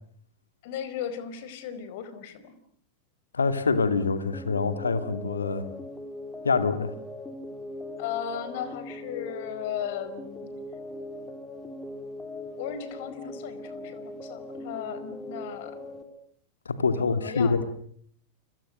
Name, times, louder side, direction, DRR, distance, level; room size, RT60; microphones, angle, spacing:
voice 1, 0.6-2.5 8.0-10.5 12.6-15.8 17.0-17.6, left 9 dB, 50° left, 13 dB, 4.7 m, -36 dB
voice 2, 3.3-5.7 6.4-6.9 16.7-17.6, left 4 dB, 75° left, 11 dB, 2.4 m, -25 dB
sound 1, 4.3-16.0, left 2 dB, 10° left, 4.2 m, -40 dB
30.0 x 27.0 x 6.7 m, 0.64 s
figure-of-eight pair, 90°, 0 cm